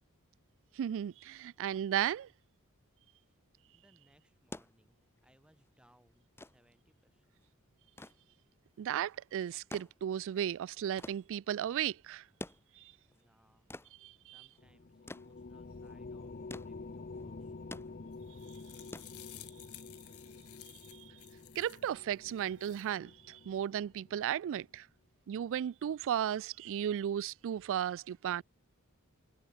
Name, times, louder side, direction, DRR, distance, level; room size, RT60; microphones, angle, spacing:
voice 1, 0.7-2.3 8.8-12.2 12.8-12.9 14.0-14.5 20.9-21.1 21.6-24.9 25.3-28.4, right 10 dB, 60° right, 0.3 m, -35 dB
voice 2, 3.7-7.4 13.1-13.7 14.2-17.9, equal, 5° right, 4.4 m, -69 dB
sound 1, 4.3-19.8 21.0-21.1, left 1 dB, 10° left, 1.3 m, -51 dB
sound 2, 14.6-24.3, left 3 dB, 40° left, 0.7 m, -49 dB
sound 3, 18.1-21.9 22.4-22.9, left 18 dB, 90° left, 1.3 m, -54 dB
head